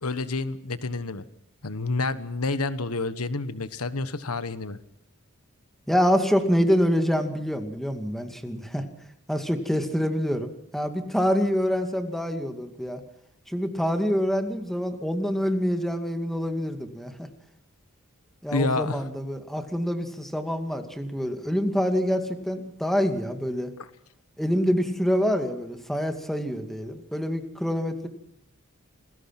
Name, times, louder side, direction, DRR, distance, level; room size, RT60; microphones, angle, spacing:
voice 1, 0.0-1.2 1.6-4.8 18.5-19.0, left 3 dB, 80° left, 13 dB, 1.3 m, -28 dB
voice 2, 5.9-8.9 9.3-13.0 13.5-17.3 18.4-23.7 24.4-28.1, equal, ahead, 6 dB, 2.4 m, -26 dB
28.0 x 20.5 x 5.9 m, 0.75 s
head